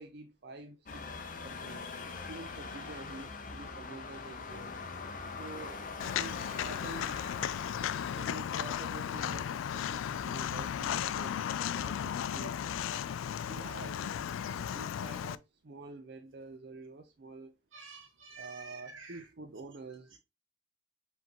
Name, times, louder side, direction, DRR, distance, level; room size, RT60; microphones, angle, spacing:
voice 1, 0.0-1.9 2.3-4.7 5.3-7.4 8.1-11.4 11.8-12.9 13.5-17.5 18.3-20.1, right 3 dB, 55° right, 0.5 m, -48 dB
sound 1, 0.9-11.3, left 4 dB, 40° left, 0.6 m, -44 dB
voice 2, 2.0-2.3 2.6-2.8 17.7-19.2, right 5 dB, 85° right, 1.5 m, -50 dB
Walk footsteps, 6.0-15.3, left 9 dB, 85° left, 0.3 m, -35 dB
4.8 x 3.4 x 2.9 m
head